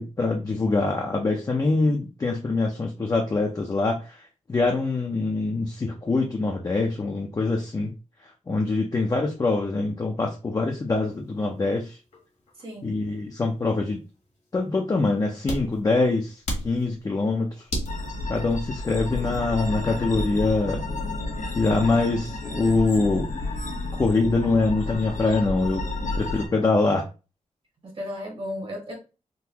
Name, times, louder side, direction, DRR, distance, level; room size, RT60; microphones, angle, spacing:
voice 1, 0.0-4.2 4.5-7.9 8.2-12.0 12.8-14.0 14.5-16.3 16.6-17.5 18.3-20.8 21.5-23.3 23.9-25.8 26.2-27.1, left 3 dB, 30° left, 0.5 m, -24 dB
sound 1, 11.1-18.8, equal, 60° left, 1.4 m, -36 dB
voice 2, 12.6-13.0 27.8-29.0, left 1 dB, 45° right, 1.1 m, -34 dB
sound 2, 17.9-26.5, left 2 dB, 80° left, 1.0 m, -31 dB
3.8 x 2.5 x 2.8 m
wide cardioid pair, 155°, 13 cm